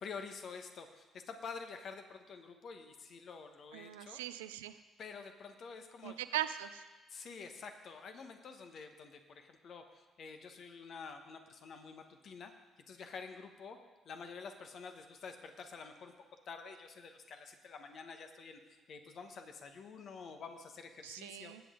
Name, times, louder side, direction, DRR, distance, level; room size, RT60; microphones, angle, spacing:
voice 1, 0.0-4.2 5.0-6.2 7.1-12.5 12.9-13.8 14.0-16.1 16.5-21.5, left 5 dB, 55° left, 6 dB, 1.3 m, -48 dB
voice 2, 3.7-4.7 6.0-6.8 21.0-21.6, right 13 dB, 80° right, 12 dB, 0.4 m, -40 dB
19.5 x 8.3 x 3.8 m, 1.2 s
figure-of-eight pair, 45°, 0 cm